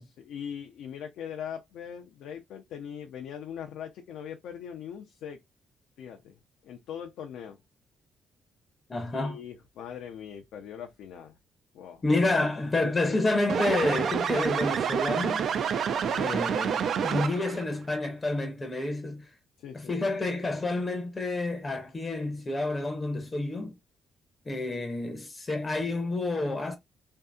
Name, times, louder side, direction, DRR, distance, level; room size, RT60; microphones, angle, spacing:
voice 1, 0.0-5.4 6.0-6.4 6.6-7.6 9.1-11.4 11.7-12.0 16.1-16.3 19.6-19.9, left 8 dB, 80° left, 0.4 m, -41 dB
voice 2, 8.9-9.4 12.0-15.4 16.1-19.3 19.7-23.7 24.5-26.8, left 2 dB, 30° left, 0.6 m, -29 dB
sound 1, 13.5-17.6, right 7 dB, 65° right, 0.3 m, -28 dB
2.6 x 2.6 x 2.2 m
cardioid pair, 90°, 0 cm